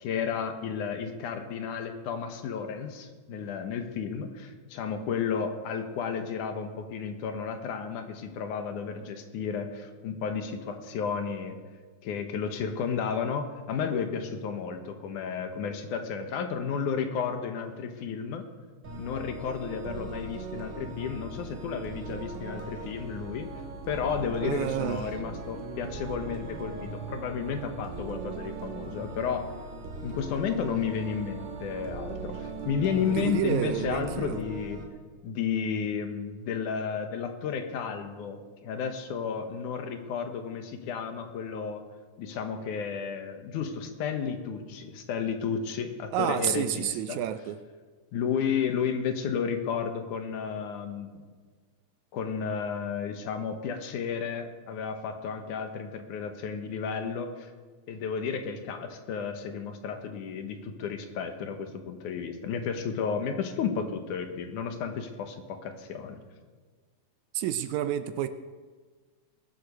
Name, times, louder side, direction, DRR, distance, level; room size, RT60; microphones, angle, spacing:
voice 1, 0.0-11.6 12.0-18.4 19.0-29.5 30.0-34.8 35.2-41.8 42.2-47.2 48.1-51.2 52.1-57.5 57.9-66.2, left 6 dB, 75° left, 7 dB, 2.6 m, -32 dB
sound 1, 18.8-34.8, right 3 dB, 60° right, 3.0 m, -39 dB
voice 2, 24.4-25.2 33.1-34.4 46.1-47.6 67.3-68.3, right 11 dB, 80° right, 10 dB, 1.8 m, -29 dB
20.5 x 7.7 x 6.5 m, 1.5 s
omnidirectional pair, 3.6 m